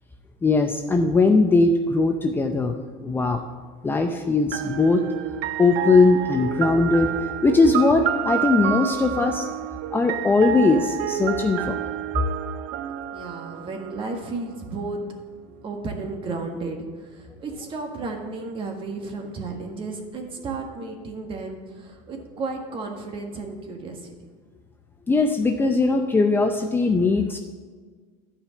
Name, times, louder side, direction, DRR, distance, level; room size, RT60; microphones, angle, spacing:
voice 1, 0.4-3.4 3.8-5.0 5.6-9.5 9.9-11.9 25.1-27.4, left 3 dB, 10° left, 4 dB, 0.5 m, -20 dB
sound 1, 4.5-14.3, right 12 dB, 65° right, 0.6 m, -29 dB
voice 2, 13.1-15.1 15.5-24.1, right 3 dB, 30° right, 3 dB, 1.6 m, -33 dB
11.5 x 5.1 x 7.5 m, 1.5 s
supercardioid pair, 135°, 17 cm